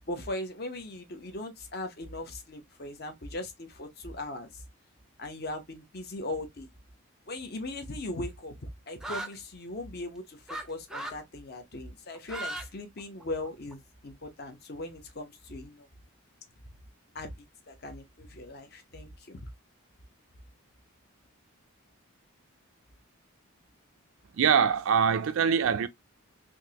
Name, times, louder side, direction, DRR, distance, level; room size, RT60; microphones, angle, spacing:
voice 1, 0.1-4.6 5.2-6.7 7.3-8.5 8.9-13.8 14.0-15.9 17.1-17.3 17.7-19.4, left 2 dB, 45° left, 0.8 m, -39 dB
sound 1, 9.0-9.3 10.5-10.6 10.9-11.2 12.1-12.7 13.0-13.7, right 2 dB, 5° right, 0.5 m, -36 dB
voice 2, 24.4-25.9, right 7 dB, 65° right, 0.3 m, -23 dB
3.6 x 2.7 x 2.8 m
head